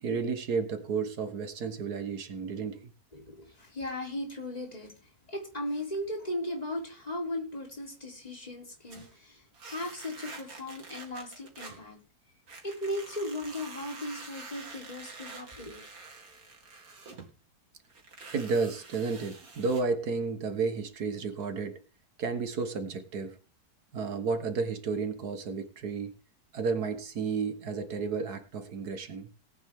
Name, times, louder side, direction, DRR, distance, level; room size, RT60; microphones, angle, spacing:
voice 1, 0.0-2.9 18.3-21.8 22.2-23.4 23.9-26.2 26.5-29.3, right 4 dB, 85° right, 8 dB, 1.9 m, -32 dB
voice 2, 3.1-12.0 12.6-15.9, left 1 dB, 25° left, 1 dB, 3.6 m, -37 dB
sound 1, 8.9-9.2 9.5-11.8 12.5-17.3 17.8-19.8, right 3 dB, 65° right, 2.8 m, -47 dB
18.5 x 9.1 x 3.6 m, 0.32 s
omnidirectional pair, 1.6 m